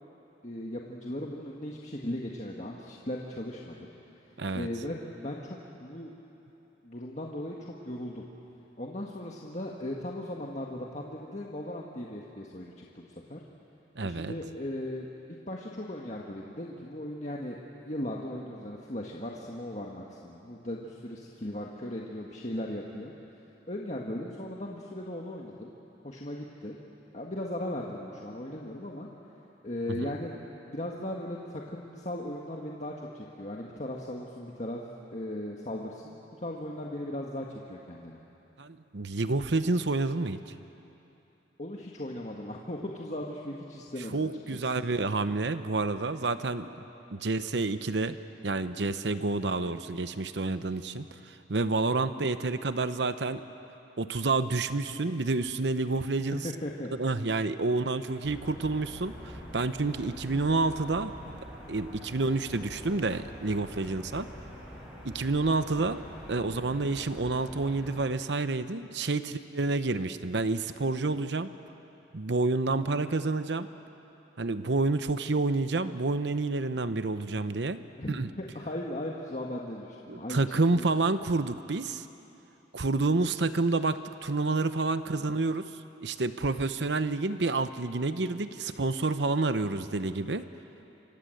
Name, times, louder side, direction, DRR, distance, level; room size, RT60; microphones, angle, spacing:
voice 1, 0.4-3.9 4.5-6.1 6.8-8.2 8.8-13.4 14.0-15.1 15.5-17.6 17.8-23.1 23.7-25.7 26.0-26.7 27.1-29.1 29.6-30.3 30.7-34.8 35.1-38.2 41.6-44.7 56.4-56.9 78.0-80.9, left 1 dB, 40° left, -2 dB, 1.7 m, -37 dB
voice 2, 14.0-14.3 30.0-30.1 38.6-40.5 44.1-46.7 47.1-48.2 48.4-53.4 54.0-56.5 57.0-61.1 61.7-64.3 65.0-66.0 66.3-71.5 72.1-73.7 74.4-77.8 78.1-78.3 80.1-82.1 82.7-85.6 86.0-90.4, right 3 dB, 75° right, 11 dB, 0.9 m, -29 dB
sound 1, 58.2-68.0, equal, 5° right, 6.7 m, -45 dB
28.5 x 25.0 x 7.9 m, 3.0 s
head